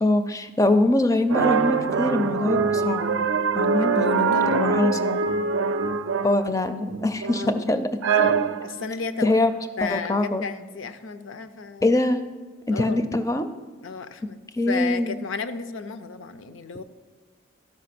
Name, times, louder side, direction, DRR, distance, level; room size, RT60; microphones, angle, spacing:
voice 1, 0.0-3.1 3.5-5.2 6.2-7.9 9.2-9.5 9.9-10.5 11.8-12.2 12.7-13.5 14.5-15.2, left 2 dB, 15° left, 9 dB, 0.4 m, -23 dB
sound 1, 1.3-6.5 6.9-7.6 8.0-8.8, right 5 dB, 80° right, 0.5 m, -23 dB
voice 2, 3.6-4.8 7.4-7.8 8.6-9.4 9.8-11.9 12.7-13.0 13.8-14.4 14.7-16.8, left 4 dB, 75° left, 11 dB, 0.5 m, -33 dB
12.5 x 5.4 x 5.9 m, 1.4 s
head